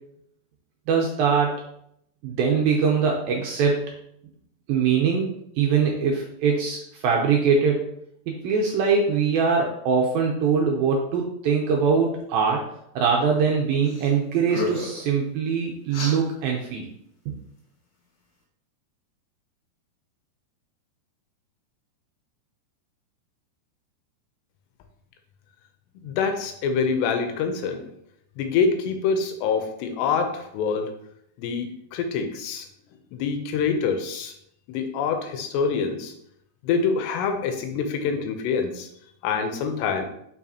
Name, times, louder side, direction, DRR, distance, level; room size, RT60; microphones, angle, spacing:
voice 1, 0.9-1.6 2.2-3.9 4.7-5.3 5.6-7.9 8.3-12.6 13.0-16.8, right 5 dB, 80° right, 0 dB, 2.2 m, -22 dB
sound 1, 13.8-14.1 14.4-15.0 15.9-16.2, left 3 dB, 55° left, 2.1 m, -31 dB
voice 2, 26.0-27.8 28.4-30.9 31.4-32.7 33.1-34.3 34.7-36.1 36.6-38.9 39.2-40.1, left 5 dB, 80° left, 6 dB, 2.9 m, -25 dB
7.2 x 6.2 x 2.9 m, 0.73 s
omnidirectional pair, 4.9 m